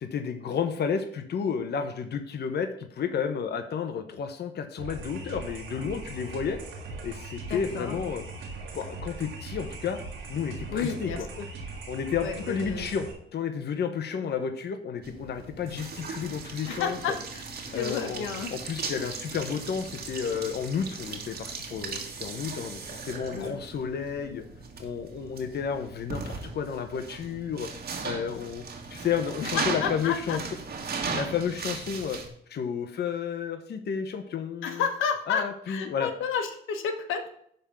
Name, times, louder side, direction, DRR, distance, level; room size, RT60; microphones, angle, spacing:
voice 1, 0.0-6.6 7.0-8.2 8.7-10.0 10.3-11.3 11.9-13.1 13.3-17.2 17.7-24.4 24.8-27.7 28.0-28.6 28.9-30.4 31.1-32.2 32.5-34.8 35.3-36.1, left 7 dB, 55° left, 6 dB, 1.1 m, -31 dB
sound 1, 4.8-13.1, right 3 dB, 85° right, 2.8 m, -40 dB
voice 2, 7.5-8.0 10.7-11.5 12.2-12.9 16.7-17.4 17.7-18.5 23.4-23.5 29.5-30.4 34.6-37.3, left 6 dB, 90° left, 6 dB, 1.3 m, -31 dB
sound 2, 15.0-32.3, right 4 dB, 55° right, 2.0 m, -37 dB
11.0 x 3.9 x 7.0 m, 0.68 s
cardioid pair, 90°, 20 cm